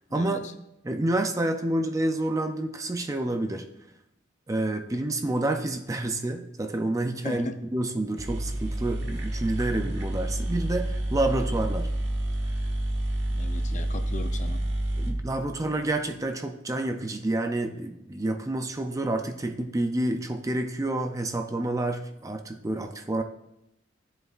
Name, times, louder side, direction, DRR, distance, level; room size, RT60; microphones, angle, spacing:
voice 1, 0.1-0.5 7.2-7.5 13.3-14.6, left 2 dB, 40° left, 7 dB, 0.6 m, -37 dB
voice 2, 0.8-3.6 4.5-11.9 15.0-23.2, right 2 dB, 15° right, 6 dB, 0.5 m, -28 dB
sound 1, 7.9-8.0 8.2-16.0, right 1 dB, 60° right, 1.3 m, -29 dB
14.5 x 7.9 x 2.4 m, 0.84 s
head